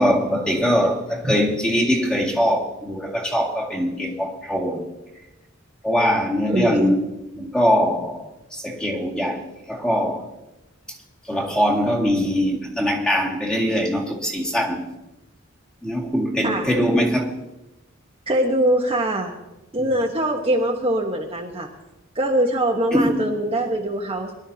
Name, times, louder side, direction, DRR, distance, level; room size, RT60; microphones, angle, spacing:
voice 1, 0.0-4.9 5.8-7.1 7.4-10.3 11.3-14.9 15.8-17.3 19.8-19.9 22.9-23.3, equal, 5° left, 2.2 m, -22 dB
voice 2, 6.5-7.0 16.4-16.7 18.3-19.3 19.7-21.7 22.1-24.3, right 1 dB, 30° right, 1.2 m, -22 dB
23.0 x 12.0 x 2.8 m
head